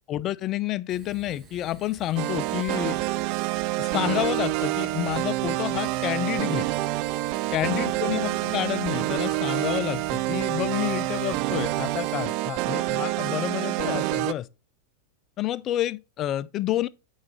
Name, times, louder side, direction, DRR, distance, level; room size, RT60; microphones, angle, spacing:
voice 1, 0.1-3.0 3.8-6.7 7.5-14.5 15.4-16.9, left 13 dB, 30° left, 0.4 m, -29 dB
Fire, 0.9-12.2, right 3 dB, 25° right, 1.8 m, -50 dB
sound 1, 2.2-14.3, right 18 dB, 45° right, 0.4 m, -27 dB
7.1 x 6.4 x 3.4 m
figure-of-eight pair, 90°, 0 cm